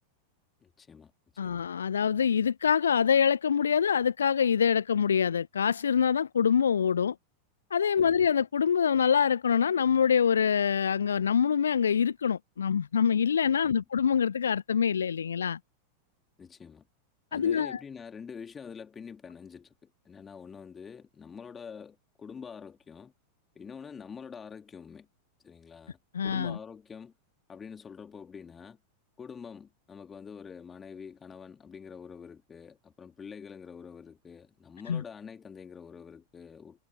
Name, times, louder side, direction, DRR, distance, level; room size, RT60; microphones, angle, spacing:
voice 1, 0.6-1.1 1.4-1.6 8.0-8.2 13.6-13.8 16.4-16.8 17.3-23.1 23.5-25.1 25.4-26.0 26.2-27.1 27.5-28.8 29.2-36.8, left 6 dB, 20° left, 3.2 m, -46 dB
voice 2, 1.4-7.1 7.7-15.6 17.3-17.8 26.1-26.6 34.9-35.0, left 7 dB, 70° left, 0.3 m, -25 dB
figure-of-eight pair, 90°, 0 cm